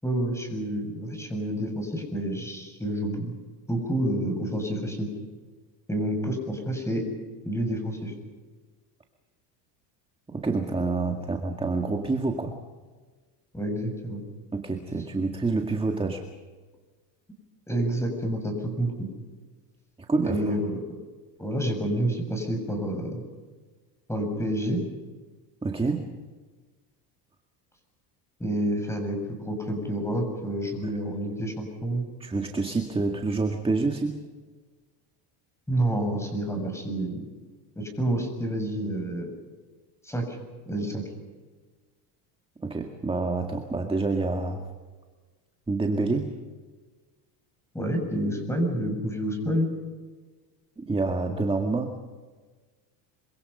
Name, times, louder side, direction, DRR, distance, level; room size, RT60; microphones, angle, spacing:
voice 1, 0.0-3.3 3.7-5.1 5.9-7.0 7.4-8.1 13.5-14.2 17.7-19.1 20.2-20.8 21.4-23.2 24.1-24.8 28.4-32.0 35.7-37.2 37.8-39.3 40.0-40.4 40.7-41.0 47.7-49.7, right 1 dB, 5° left, 4 dB, 7.0 m, -28 dB
voice 2, 10.3-12.6 14.5-16.3 20.1-20.6 25.6-26.1 30.8-30.9 32.2-34.2 42.6-44.7 45.7-46.4 50.8-52.0, right 3 dB, 10° right, 4 dB, 2.0 m, -27 dB
26.0 x 25.0 x 5.7 m, 1.4 s
supercardioid pair, 120°, 48 cm